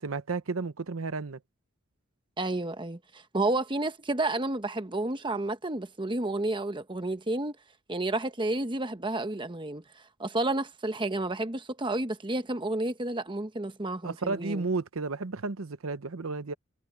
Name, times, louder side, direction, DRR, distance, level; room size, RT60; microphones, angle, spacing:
voice 1, 0.0-1.4 14.0-16.5, right 3 dB, 75° right, 0.8 m, -32 dB
voice 2, 2.4-7.5 7.9-9.8 10.2-14.7, right 2 dB, 25° right, 1.1 m, -31 dB
head